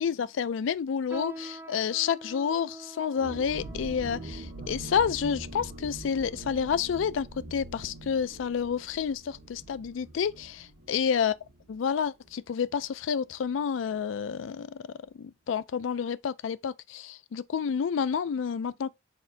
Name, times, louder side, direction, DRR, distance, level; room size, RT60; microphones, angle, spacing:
voice 1, 0.0-11.3 11.7-18.9, left 7 dB, 75° left, 0.4 m, -29 dB
sound 1, 1.1-6.8 7.4-7.6 8.3-8.6 9.0-9.2 9.9-10.0, right 1 dB, 10° right, 0.5 m, -47 dB
sound 2, 3.2-12.6 12.8-12.9 13.3-13.6, right 2 dB, 85° right, 1.4 m, -43 dB
4.2 x 3.9 x 2.6 m
head